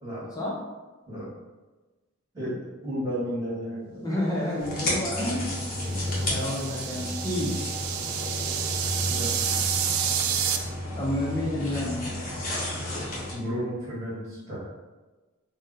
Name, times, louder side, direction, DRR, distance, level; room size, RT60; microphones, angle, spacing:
voice 1, 2.3-4.0 6.4-6.5 9.0-9.4 13.3-14.6, equal, 15° right, -10 dB, 1.3 m, -33 dB
voice 2, 4.0-5.6 6.3-7.6 10.9-12.1, left 1 dB, 15° left, -4 dB, 0.4 m, -29 dB
sound 1, 4.6-13.3, left 1 dB, 45° left, 0.9 m, -32 dB
sound 2, 5.4-10.6, right 8 dB, 80° right, 0.3 m, -30 dB
2.5 x 2.1 x 3.9 m, 1.2 s
head